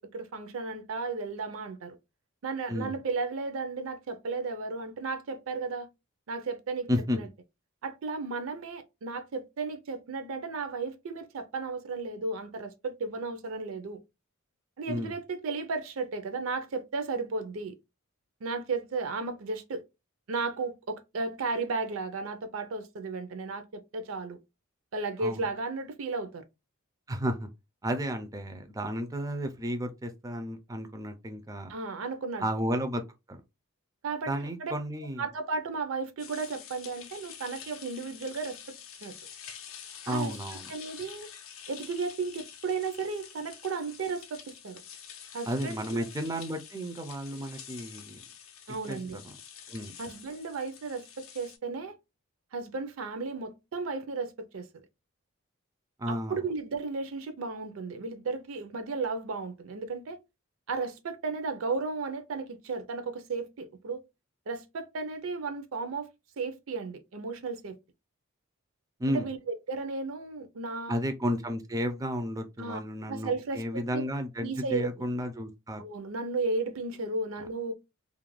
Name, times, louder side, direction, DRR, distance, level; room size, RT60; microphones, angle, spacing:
voice 1, 0.0-2.0 2.4-5.9 6.3-6.9 7.2-7.3 7.8-14.0 14.8-17.7 18.4-19.8 20.3-24.4 24.9-26.4 31.7-32.5 34.0-34.7 35.2-38.6 39.0-39.1 40.1-40.4 40.7-41.3 41.7-44.8 45.3-46.1 48.7-49.2 50.0-51.9 52.5-54.7 56.1-60.2 60.7-64.0 64.5-66.1 66.4-67.8 69.1-71.0 72.6-72.8 73.1-74.0 74.4-74.9 75.8-77.7, right 4 dB, 70° right, 0.5 m, -34 dB
voice 2, 6.9-7.2 14.9-15.1 25.2-25.4 27.1-27.5 27.8-31.7 32.4-33.0 33.3-33.4 34.3-35.2 40.1-40.7 45.5-48.2 48.9-49.3 49.7-49.9 56.0-56.4 69.0-69.3 70.9-75.8, equal, 15° right, 0.3 m, -32 dB
sound 1, 36.2-51.6, left 8 dB, 65° left, 0.5 m, -47 dB
2.4 x 2.1 x 3.0 m
head